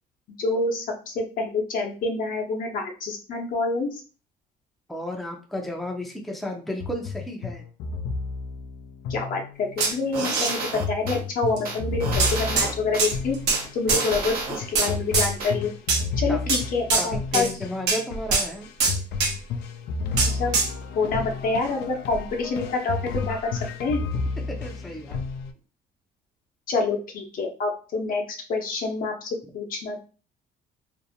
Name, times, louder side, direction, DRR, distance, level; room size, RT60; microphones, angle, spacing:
voice 1, 0.4-4.0 9.1-13.4 13.7-15.7 16.2-17.5 20.0-20.6 20.9-24.0 26.7-28.2 28.5-30.0, left 3 dB, 55° left, 1 dB, 0.8 m, -27 dB
voice 2, 4.9-7.6 10.2-10.4 13.9-14.0 16.3-16.5 17.0-18.7 24.5-25.2, left 1 dB, ahead, 1 dB, 0.5 m, -33 dB
sound 1, 6.8-9.9 10.8-25.5, left 4 dB, 75° left, 0.4 m, -32 dB
sound 2, 9.8-11.2 11.6-13.1 13.5-14.9 15.4-15.5, right 3 dB, 60° right, 1.2 m, -31 dB
sound 3, 9.8-10.5 11.6-11.7 12.2-12.7 13.0-13.6 13.9-14.0 14.7-15.3 15.9-16.0 16.5-16.6 16.9-17.1 17.3-17.5 17.9-18.0 18.3-18.5 18.8-19.3 20.2-20.7, right 4 dB, 80° right, 0.8 m, -23 dB
2.6 x 2.0 x 2.7 m, 0.36 s
cardioid pair, 110°, 17 cm